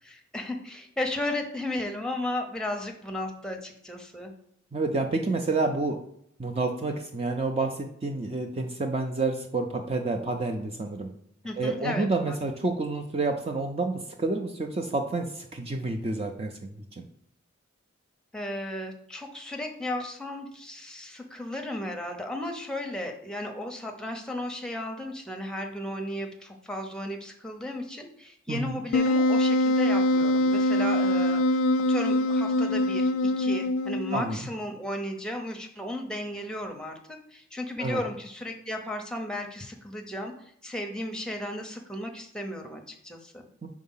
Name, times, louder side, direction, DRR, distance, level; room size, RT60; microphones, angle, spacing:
voice 1, 0.0-4.3 11.4-12.4 18.3-31.6 31.9-43.4, left 1 dB, 5° left, 2 dB, 0.7 m, -35 dB
voice 2, 4.7-6.0 6.4-11.1 11.6-17.0 28.5-28.8 34.1-34.4 37.8-38.0 43.6-43.7, right 3 dB, 30° right, 4 dB, 0.4 m, -29 dB
Wind instrument woodwind instrument, 28.9-34.3, left 1 dB, 80° left, 0.3 m, -24 dB
4.8 x 3.6 x 5.6 m, 0.72 s
head